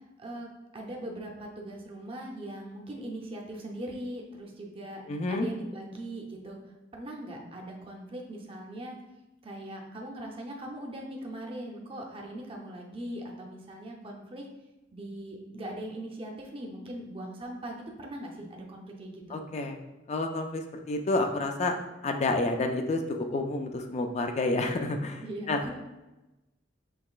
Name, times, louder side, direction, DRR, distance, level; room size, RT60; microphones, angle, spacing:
voice 1, 0.2-5.0 5.3-6.6 6.9-9.0 9.4-14.4 14.9-19.4 25.2-25.7, right 1 dB, 30° right, 0 dB, 0.6 m, -40 dB
voice 2, 5.1-5.5 19.3-19.8 20.1-21.7 22.0-25.6, left 2 dB, 35° left, 4 dB, 0.4 m, -29 dB
5.7 x 3.0 x 2.4 m, 1.0 s
head